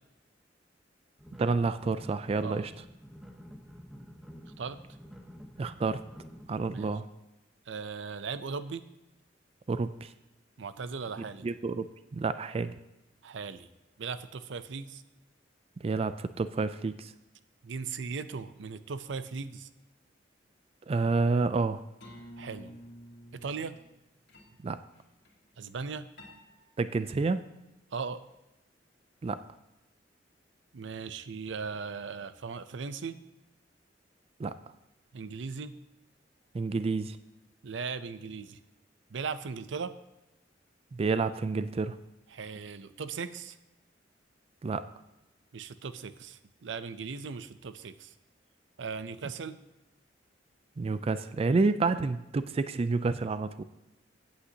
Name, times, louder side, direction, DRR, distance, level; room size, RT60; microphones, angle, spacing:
sound 1, 1.2-6.9, equal, ahead, 1.0 m, -49 dB
voice 1, 1.4-2.7 5.6-6.0 6.5-7.1 9.7-10.1 11.4-11.8 12.1-12.8 15.8-17.1 20.9-21.8 24.6-24.8 26.8-27.5 29.2-29.5 34.4-34.6 36.5-37.2 40.9-42.0 44.6-44.9 50.8-53.6, right 4 dB, 35° right, 13 dB, 0.3 m, -29 dB
voice 2, 7.7-8.8 10.6-11.5 13.2-13.7 14.0-15.0 17.6-19.7 22.4-22.7 23.3-23.8 25.6-26.1 27.9-28.2 30.7-33.2 35.1-35.7 37.6-38.6 39.1-39.9 42.3-43.6 45.5-48.1 48.8-49.6, right 5 dB, 85° right, 13 dB, 0.6 m, -38 dB
sound 2, 22.0-24.0 24.3-24.6 24.9-25.3 26.2-26.7, equal, 65° left, 2.2 m, -50 dB
15.5 x 8.6 x 2.8 m, 0.98 s
head